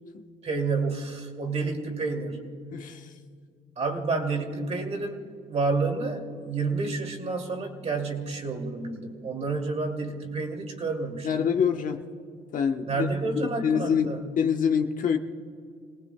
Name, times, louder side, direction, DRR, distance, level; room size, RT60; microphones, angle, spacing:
voice 1, 0.4-2.5 3.8-5.2 5.5-11.4 12.9-14.2, right 3 dB, 40° right, 2 dB, 2.6 m, -29 dB
voice 2, 2.7-3.0 11.2-12.0 12.5-13.1 13.6-15.2, left 7 dB, 50° left, 5 dB, 1.1 m, -25 dB
29.0 x 19.0 x 2.3 m, 2.2 s
cardioid pair, 110°, 17 cm